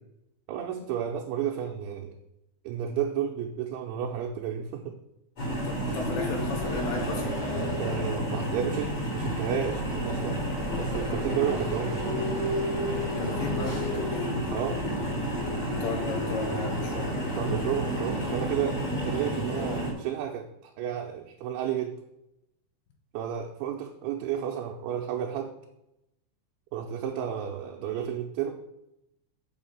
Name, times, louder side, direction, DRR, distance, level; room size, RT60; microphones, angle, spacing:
voice 1, 0.5-2.2 2.6-5.0 5.8-6.0 7.8-10.4 10.8-12.1 14.5-14.8 17.4-22.0 23.1-25.5 26.7-28.6, right 9 dB, 80° right, 2 dB, 3.0 m, -32 dB
sound 1, 5.4-19.9, equal, 30° left, 3.8 m, -30 dB
voice 2, 5.6-7.2 11.3-11.4 13.2-14.3 15.7-17.1, left 3 dB, 65° left, 2 dB, 2.9 m, -35 dB
7.0 x 5.8 x 7.3 m, 0.86 s
omnidirectional pair, 5.5 m